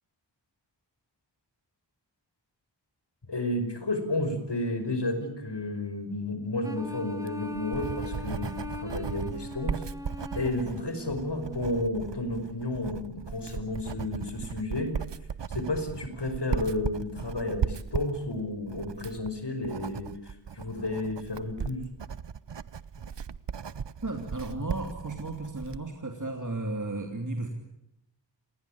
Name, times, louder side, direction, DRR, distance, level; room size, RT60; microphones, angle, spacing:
voice 1, 3.3-9.8 10.3-14.9 15.5-20.1 20.5-21.8, left 2 dB, 65° left, 8 dB, 5.5 m, -32 dB
sound 1, 6.6-11.8, left 1 dB, 10° right, 2.6 m, -39 dB
Writing, 7.1-25.9, right 7 dB, 70° right, 0.9 m, -37 dB
voice 2, 24.0-27.5, right 2 dB, 40° right, 4 dB, 3.2 m, -34 dB
27.5 x 20.0 x 8.8 m, 0.79 s
wide cardioid pair, 55°, 44 cm